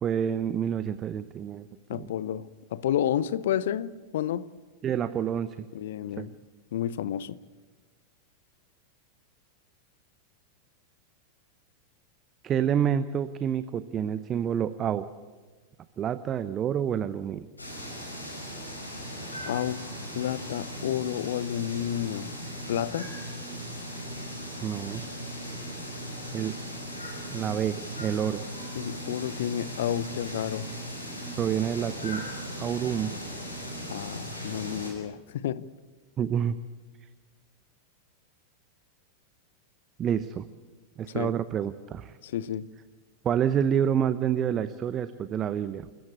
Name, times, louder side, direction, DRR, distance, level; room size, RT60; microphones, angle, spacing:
voice 1, 0.0-1.7 1.9-2.1 4.8-5.7 6.2-6.3 12.4-15.1 16.0-17.5 24.6-25.0 26.3-26.6 27.3-28.4 31.4-32.2 32.6-33.1 36.2-36.6 40.0-40.5 41.0-42.2 43.2-45.9, right 9 dB, 30° right, 0.7 m, -28 dB
voice 2, 1.9-4.5 5.7-6.3 6.7-7.4 19.4-19.9 20.1-22.3 22.7-23.1 28.7-30.6 33.9-35.7 41.1-41.3 42.2-42.7, left 10 dB, 60° left, 0.7 m, -30 dB
sound 1, 17.6-34.9, equal, 80° left, 5.9 m, -38 dB
28.0 x 14.5 x 8.4 m
figure-of-eight pair, 90°, 0 cm